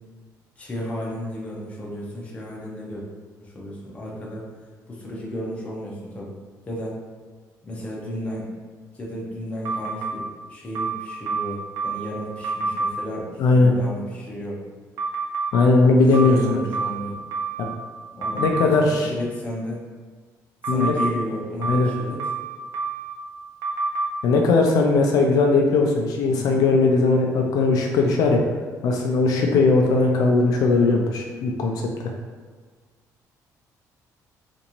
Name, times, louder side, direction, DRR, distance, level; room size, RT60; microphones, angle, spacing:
voice 1, 0.6-3.0 3.4-4.5 4.9-6.3 6.7-6.9 7.6-8.5 8.9-14.6 15.8-17.2 18.1-19.8 20.6-22.2 26.3-26.7, equal, 20° left, -4 dB, 0.7 m, -33 dB
sound 1, 9.6-10.1 10.7-12.1 12.4-12.9 15.0-15.5 16.1-17.8 18.2-18.7 20.6-21.1 21.6-23.1 23.6-24.1, right 4 dB, 55° right, 0.5 m, -27 dB
voice 2, 13.4-13.7 15.5-16.6 17.6-17.7 18.3-19.1 20.7-20.9 21.6-21.9 24.2-28.4 28.8-32.1, left 3 dB, 70° left, 1 dB, 0.4 m, -19 dB
3.9 x 2.5 x 2.9 m, 1.5 s
cardioid pair, 170°, 7 cm